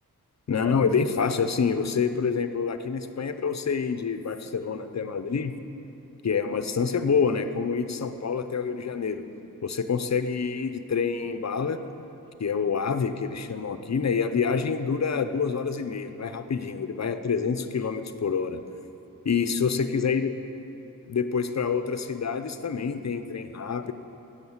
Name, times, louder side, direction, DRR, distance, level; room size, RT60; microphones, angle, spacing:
voice 1, 0.5-5.5 6.2-9.2 9.6-11.8 12.4-18.6 19.2-20.3 21.1-23.9, left 5 dB, 50° left, 9 dB, 0.7 m, -27 dB
17.5 x 6.6 x 7.2 m, 2.9 s
wide cardioid pair, 110°, 34 cm